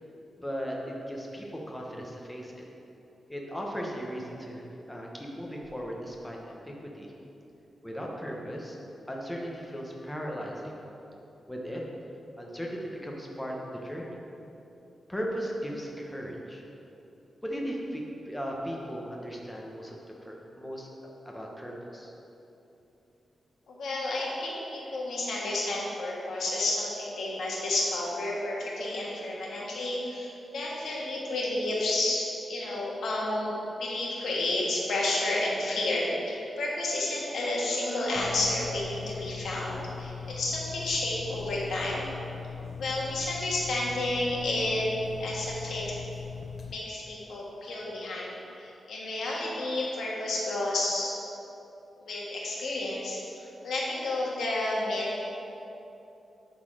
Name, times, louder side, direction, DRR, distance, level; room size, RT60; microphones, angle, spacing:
voice 1, 0.4-2.6 3.3-7.1 7.8-8.8 9.1-10.8 11.5-11.8 12.4-14.2 15.1-16.6 17.4-20.0 20.2-20.9 21.2-22.1, equal, 5° left, -2 dB, 1.0 m, -37 dB
voice 2, 23.7-33.5 33.8-42.0 42.8-44.9 45.2-46.0 46.7-51.1 52.0-53.2 53.6-55.2, left 2 dB, 80° left, -4 dB, 1.6 m, -31 dB
sound 1, 38.2-46.7, left 6 dB, 50° left, 0.5 m, -40 dB
10.0 x 4.0 x 4.9 m, 3.0 s
wide cardioid pair, 115°, 0 cm